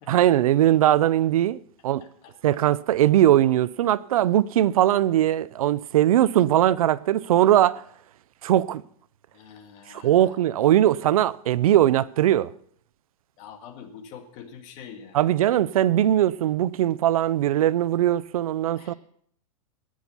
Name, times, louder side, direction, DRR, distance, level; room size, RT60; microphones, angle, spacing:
voice 1, 0.1-1.6 1.8-2.0 2.4-7.8 8.4-8.8 9.9-12.5 15.1-18.9, right 12 dB, 75° right, 0.6 m, -20 dB
voice 2, 2.0-2.4 9.3-10.4 13.4-15.3 18.8-18.9, left 7 dB, 40° left, 2.1 m, -45 dB
18.5 x 6.4 x 5.6 m
hypercardioid pair, 135°, 19 cm